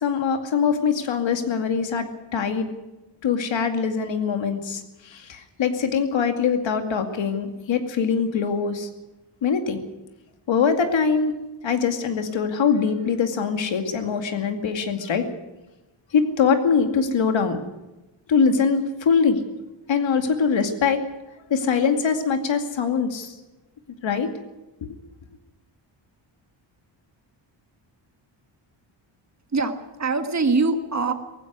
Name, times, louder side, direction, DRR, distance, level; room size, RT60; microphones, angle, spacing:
voice 1, 0.0-2.7 3.2-8.9 9.4-9.8 10.5-11.4 11.6-15.3 16.1-17.6 18.3-19.4 19.9-21.0 21.5-23.3 24.0-24.3, left 6 dB, 70° left, 6 dB, 2.4 m, -23 dB
voice 2, 29.5-31.1, right 3 dB, 35° right, 7 dB, 1.7 m, -23 dB
18.5 x 15.5 x 9.5 m, 1.0 s
wide cardioid pair, 145°, 47 cm